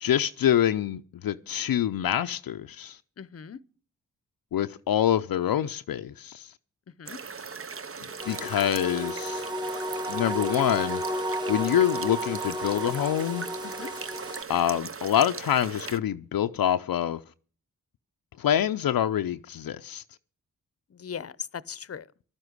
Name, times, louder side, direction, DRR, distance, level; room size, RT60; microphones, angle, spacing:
voice 1, 0.0-3.0 4.5-6.5 8.3-9.4 10.1-11.0 11.5-13.5 14.5-17.2 18.4-20.0, left 10 dB, 75° left, 0.6 m, -26 dB
voice 2, 3.2-3.6 7.0-7.2 13.6-13.9 20.9-22.1, left 7 dB, 40° left, 0.8 m, -39 dB
sound 1, 7.1-16.0, right 5 dB, 35° right, 0.8 m, -39 dB
sound 2, 8.2-14.4, equal, 10° right, 1.0 m, -33 dB
12.0 x 9.9 x 7.9 m
cardioid pair, 45°, 36 cm